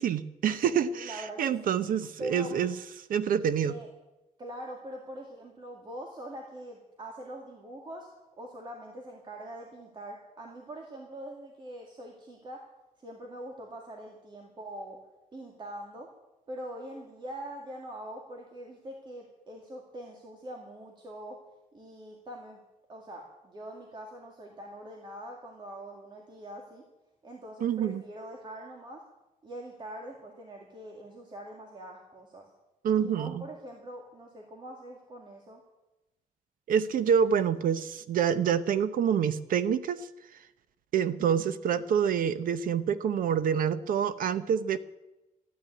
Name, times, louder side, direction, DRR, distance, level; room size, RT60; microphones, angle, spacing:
voice 1, 0.0-2.7 3.1-3.8 27.6-28.0 32.8-33.5 36.7-40.1 40.9-44.8, right 8 dB, 80° right, 13 dB, 0.8 m, -27 dB
voice 2, 0.6-1.7 2.2-2.5 3.6-3.9 4.4-8.1 8.4-12.6 13.0-15.0 15.3-16.1 16.5-21.4 21.7-22.6 22.9-26.8 27.2-29.0 29.4-32.5 33.0-35.6, right 1 dB, 35° right, 0 dB, 2.1 m, -43 dB
14.0 x 9.6 x 9.5 m, 1.0 s
wide cardioid pair, 165°, 14 cm